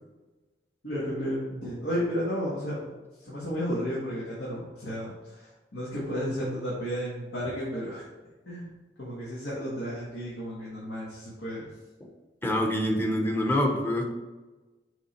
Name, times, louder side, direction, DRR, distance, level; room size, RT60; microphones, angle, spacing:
voice 1, 0.8-2.9 3.2-8.0 8.5-8.7 9.0-11.7, equal, 75° left, -8 dB, 1.9 m, -33 dB
voice 2, 12.4-14.0, left 1 dB, 10° left, 2 dB, 0.9 m, -25 dB
6.8 x 3.8 x 4.4 m, 1.2 s
head